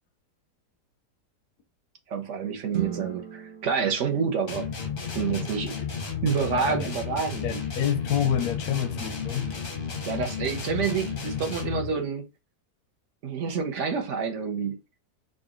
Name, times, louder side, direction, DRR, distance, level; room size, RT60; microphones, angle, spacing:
voice 1, 2.1-4.7 5.1-5.8 6.2-7.6 10.1-12.3 13.2-14.8, right 6 dB, 60° right, 0.8 m, -28 dB
sound 1, 2.7-5.1, right 9 dB, 75° right, 1.5 m, -38 dB
sound 2, 4.5-12.0, left 6 dB, 45° left, 0.7 m, -33 dB
voice 2, 6.5-6.9 7.4-9.5, left 9 dB, 70° left, 1.0 m, -27 dB
3.8 x 2.2 x 3.6 m
omnidirectional pair, 1.8 m